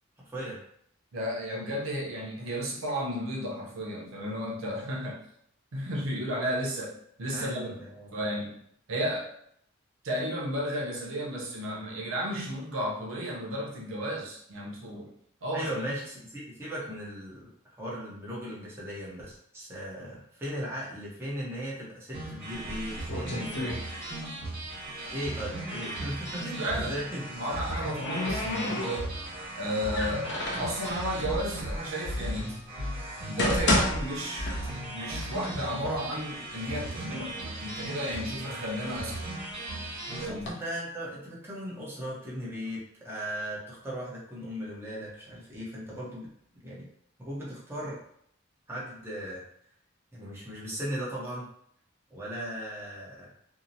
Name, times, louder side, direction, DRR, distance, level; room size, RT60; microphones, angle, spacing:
voice 1, 0.3-0.6 7.3-8.1 15.5-23.8 25.1-27.2 40.1-46.3 46.6-46.9 47.2-48.0 48.7-49.4 50.1-51.5 52.1-53.3, equal, 10° right, -6 dB, 0.7 m, -37 dB
voice 2, 1.1-5.2 5.7-6.9 7.2-7.8 8.1-8.6 8.9-9.3 10.0-15.1 15.4-15.7 26.6-27.0 27.3-29.1 29.6-30.3 30.6-32.6 33.3-34.5 34.9-39.3 40.2-40.4, equal, 90° right, -2 dB, 0.6 m, -33 dB
sound 1, 22.1-40.3, right 1 dB, 30° right, 1.4 m, -37 dB
sound 2, 22.5-24.4 24.7-26.1 27.3-29.3 29.9-30.8 31.6-31.7 32.3-32.4 33.1-35.0 35.4-35.5 36.2-36.3 36.6-37.3 37.8-39.5 40.1-40.5, left 1 dB, 60° left, 0.5 m, -32 dB
2.7 x 2.0 x 2.6 m, 0.68 s
head